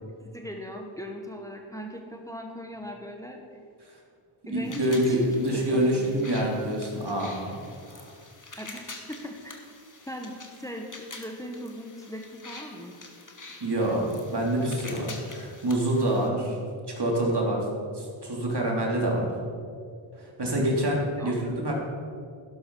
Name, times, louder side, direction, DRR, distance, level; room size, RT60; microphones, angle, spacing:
voice 1, 0.3-3.4 4.4-6.3 8.6-9.6 10.0-12.9 20.5-20.9 21.2-21.5, equal, 5° left, 2 dB, 1.4 m, -39 dB
voice 2, 4.5-7.6 7.9-8.1 13.6-16.6 17.0-17.6 17.9-19.3 20.2-21.7, right 1 dB, 50° right, -2 dB, 3.2 m, -26 dB
sound 1, 4.6-16.3, left 3 dB, 35° left, 1.9 m, -46 dB
12.0 x 11.0 x 4.8 m, 2.3 s
cardioid pair, 45°, 50 cm